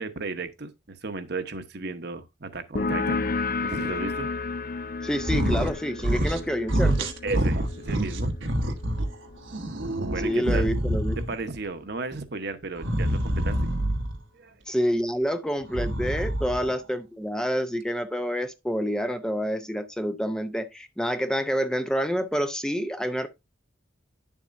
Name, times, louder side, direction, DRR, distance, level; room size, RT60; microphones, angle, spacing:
voice 1, 0.0-3.2 3.6-4.3 7.2-8.3 10.1-10.7 11.2-13.6 14.3-14.5, right 3 dB, 60° right, 1.1 m, -34 dB
sound 1, 2.8-10.0, left 3 dB, 50° left, 0.6 m, -32 dB
voice 2, 5.0-7.1 10.2-11.2 14.7-23.3, equal, 5° left, 0.6 m, -28 dB
sound 2, 5.2-5.7 6.0-6.4 6.7-9.1 9.5-11.4 12.8-14.2 15.6-16.7, right 1 dB, 85° right, 1.3 m, -26 dB
10.5 x 7.2 x 2.6 m
head